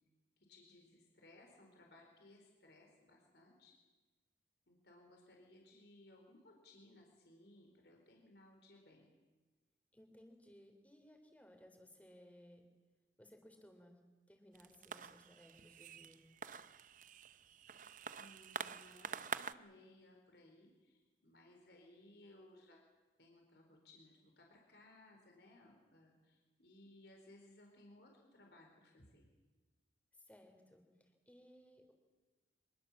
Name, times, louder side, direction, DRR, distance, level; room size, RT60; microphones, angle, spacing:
voice 1, 0.4-3.7 4.7-9.1 18.2-22.8 23.2-29.3, left 1 dB, 65° left, 1 dB, 4.2 m, -62 dB
voice 2, 9.9-12.7 13.2-14.0 14.3-16.2 30.2-31.9, equal, 10° left, 4 dB, 3.4 m, -62 dB
sound 1, 14.5-19.5, right 6 dB, 45° right, 0.6 m, -47 dB
24.5 x 21.0 x 7.3 m, 1.2 s
head